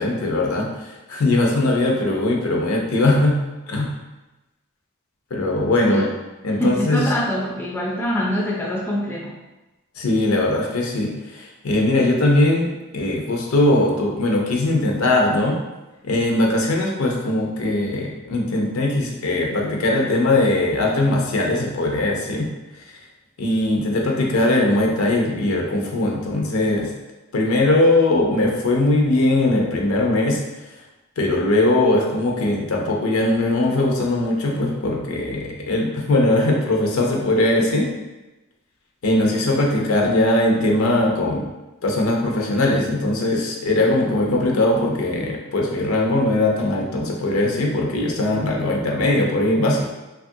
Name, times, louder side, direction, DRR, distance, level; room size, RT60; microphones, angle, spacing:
voice 1, 0.0-3.4 3.7-3.9 5.3-6.1 6.4-7.1 10.0-12.7 12.9-15.6 16.0-22.5 23.4-26.9 27.3-30.4 31.2-37.9 39.0-41.5 41.8-49.8, left 2 dB, 75° left, 0 dB, 0.5 m, -20 dB
voice 2, 6.6-9.3, equal, 10° left, -4 dB, 0.3 m, -24 dB
2.9 x 2.3 x 2.6 m, 1.1 s
head